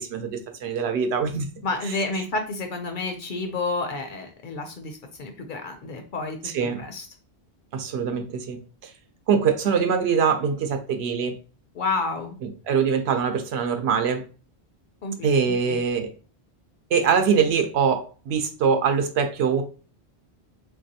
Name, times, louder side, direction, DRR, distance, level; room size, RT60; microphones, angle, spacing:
voice 1, 0.0-1.5 6.4-6.8 7.7-8.9 9.3-11.4 12.4-14.2 15.2-16.1 16.9-19.6, right 6 dB, 75° right, 7 dB, 0.8 m, -23 dB
voice 2, 1.6-6.4 6.8-7.1 11.8-12.4 15.0-15.4 15.6-15.8, left 3 dB, 60° left, 5 dB, 0.6 m, -30 dB
3.2 x 2.6 x 2.7 m, 0.36 s
omnidirectional pair, 1.1 m